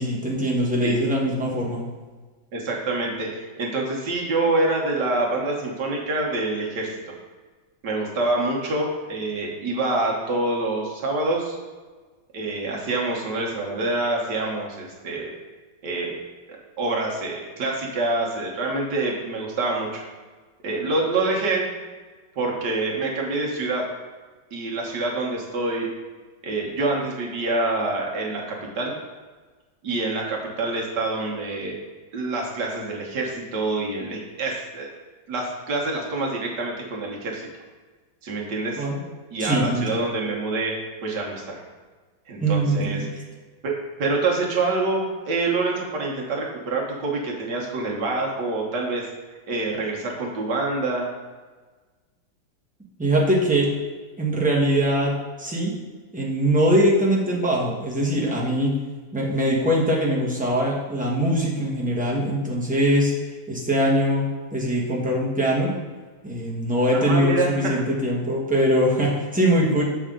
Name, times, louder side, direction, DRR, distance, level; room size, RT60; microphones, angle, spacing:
voice 1, 0.0-1.8 38.8-39.0 39.4-40.0 42.4-43.1 53.0-53.7 54.2-55.8 56.1-58.7 59.1-63.1 63.5-65.7 66.2-69.8, equal, 5° right, -4 dB, 0.9 m, -22 dB
voice 2, 2.5-7.2 7.8-11.6 12.3-15.3 15.8-16.1 16.8-20.0 20.6-21.7 22.4-23.9 24.5-25.9 26.4-29.0 29.8-31.8 32.1-34.9 35.3-37.5 38.2-38.8 39.3-41.6 42.3-43.2 43.6-43.7 44.0-49.1 49.5-51.1 66.9-67.5, right 2 dB, 65° right, -1 dB, 1.8 m, -26 dB
6.9 x 5.6 x 3.7 m, 1.3 s
omnidirectional pair, 2.0 m